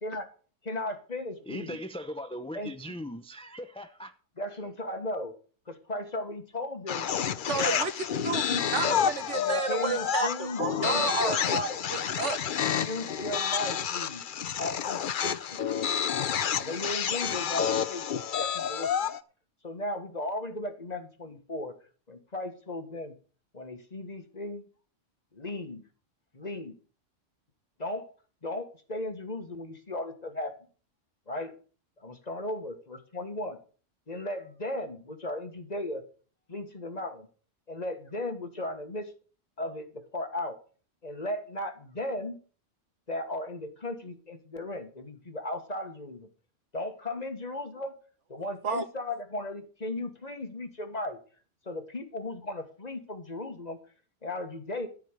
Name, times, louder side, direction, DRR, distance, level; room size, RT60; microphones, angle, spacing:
voice 1, 0.0-0.3 0.6-1.8 2.5-2.9 4.4-5.3 5.7-7.1 7.6-7.8 8.1-9.0 9.7-11.8 12.7-14.2 14.6-15.6 16.6-19.1 19.6-21.7 22.1-23.1 23.5-24.7 25.3-25.8 26.3-26.7 27.8-28.1 28.4-30.5 31.3-31.5 32.0-33.6 34.1-36.0 36.5-37.3 37.7-39.1 39.6-40.6 41.0-42.4 43.1-46.3 46.7-47.9 48.3-51.2 51.6-53.8 54.2-54.9, left 1 dB, 35° left, 1.5 m, -36 dB
voice 2, 1.5-4.1, equal, 5° left, 0.5 m, -39 dB
sound 1, 6.9-19.2, left 8 dB, 50° left, 0.7 m, -29 dB
voice 3, 7.5-7.9 8.2-8.4 8.7-11.5 11.9-12.4 12.7-12.8 48.6-48.9, right 5 dB, 70° right, 1.4 m, -31 dB
13.5 x 5.0 x 9.0 m
omnidirectional pair, 1.3 m